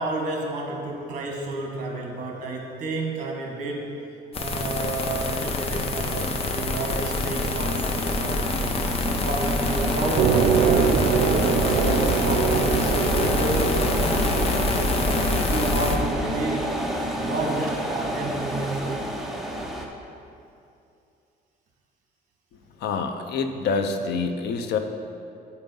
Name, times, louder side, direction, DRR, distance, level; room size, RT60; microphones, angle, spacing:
voice 1, 0.0-4.0 4.4-8.5 9.0-11.2 11.6-13.8 14.7-14.9 15.5-16.8 17.2-19.1, right 2 dB, 50° right, 1 dB, 1.4 m, -31 dB
sound 1, 4.3-16.0, left 2 dB, 35° left, 0.7 m, -26 dB
sound 2, 7.2-19.9, right 1 dB, ahead, 0.6 m, -30 dB
sound 3, 10.2-16.5, right 7 dB, 90° right, 0.5 m, -25 dB
voice 2, 22.8-24.8, left 4 dB, 75° left, 7 dB, 0.6 m, -26 dB
8.1 x 5.4 x 5.3 m, 2.6 s
cardioid pair, 155°, 17 cm